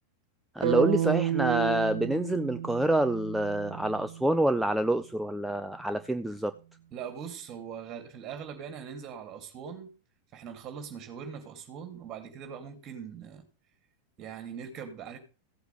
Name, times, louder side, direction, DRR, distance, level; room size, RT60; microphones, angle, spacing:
voice 1, 0.5-6.5, right 1 dB, 5° right, 0.5 m, -27 dB
sound 1, 0.6-4.7, right 12 dB, 55° right, 0.6 m, -31 dB
voice 2, 6.9-9.9 10.3-13.4 14.2-15.2, right 7 dB, 30° right, 2.9 m, -41 dB
15.5 x 8.0 x 3.5 m
figure-of-eight pair, 90°, 0 cm